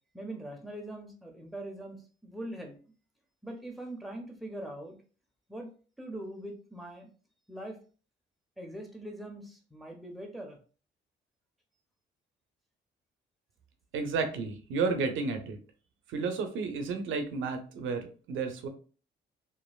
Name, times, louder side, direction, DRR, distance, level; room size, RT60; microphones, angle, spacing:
voice 1, 0.1-2.8 3.4-5.0 5.5-5.7 6.0-7.1 7.5-7.8 8.6-10.6, right 1 dB, ahead, 2 dB, 0.7 m, -42 dB
voice 2, 13.9-15.6 16.1-18.7, right 4 dB, 80° right, 6 dB, 0.6 m, -32 dB
3.0 x 2.5 x 2.3 m, 0.37 s
cardioid pair, 90°, 20 cm